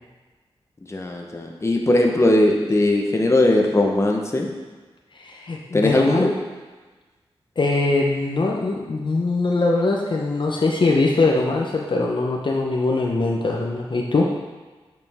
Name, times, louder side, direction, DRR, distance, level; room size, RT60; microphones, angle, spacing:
voice 1, 0.9-4.5 5.7-6.3, left 1 dB, 30° left, 1 dB, 1.0 m, -19 dB
voice 2, 5.2-6.3 7.6-14.3, left 3 dB, 50° left, -1 dB, 0.8 m, -22 dB
8.1 x 5.2 x 3.6 m, 1.3 s
wide cardioid pair, 70°, 10 cm